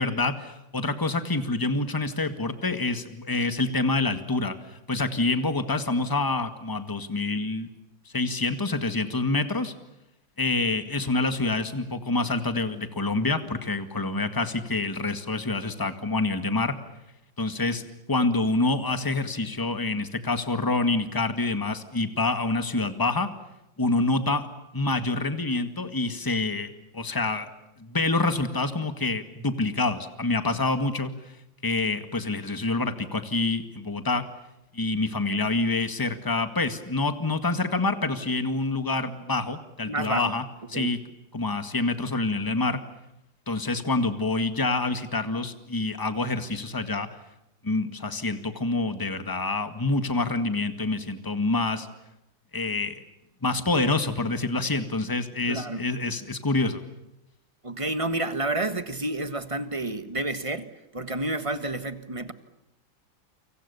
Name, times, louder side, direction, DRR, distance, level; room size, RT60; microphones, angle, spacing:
voice 1, 0.0-7.7 8.1-9.7 10.4-16.8 17.4-23.3 23.8-24.5 24.7-27.5 27.8-31.1 31.6-34.2 34.7-40.4 40.7-41.0 41.3-42.8 43.5-47.1 47.6-51.9 52.5-53.0 53.4-56.8, left 2 dB, 10° left, 9 dB, 1.8 m, -27 dB
voice 2, 39.9-40.3 40.7-40.9 55.4-55.8 57.6-62.3, right 2 dB, 20° right, 11 dB, 1.4 m, -30 dB
29.0 x 26.0 x 7.0 m, 0.89 s
omnidirectional pair, 2.1 m